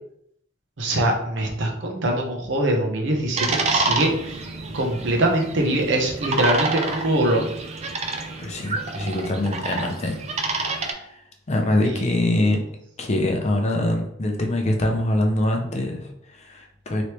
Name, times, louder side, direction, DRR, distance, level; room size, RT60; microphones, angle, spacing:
voice 1, 0.8-4.5 4.7-7.5 11.8-12.0, right 1 dB, 70° right, 1 dB, 0.7 m, -23 dB
sound 1, 3.4-10.9, right 3 dB, 35° right, 0.3 m, -28 dB
voice 2, 8.4-10.2 10.6-11.2 11.5-12.6 13.0-17.0, left 1 dB, 35° left, 2 dB, 0.5 m, -24 dB
3.2 x 3.0 x 2.9 m, 0.74 s
head